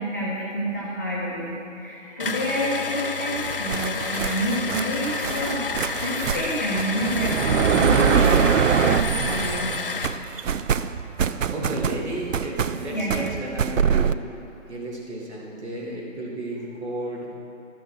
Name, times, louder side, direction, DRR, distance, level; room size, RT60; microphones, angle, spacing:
voice 1, 0.0-10.5 11.2-11.3 12.9-13.1, equal, 15° left, -9 dB, 0.7 m, -29 dB
sound 1, 2.2-10.2, left 4 dB, 45° left, 0.5 m, -30 dB
sound 2, 3.4-9.8 10.0-14.2, right 7 dB, 80° right, 0.5 m, -24 dB
voice 2, 11.5-14.2 14.7-17.3, right 1 dB, 60° right, -4 dB, 2.9 m, -33 dB
12.0 x 6.1 x 6.3 m, 2.7 s
figure-of-eight pair, 160°, 38 cm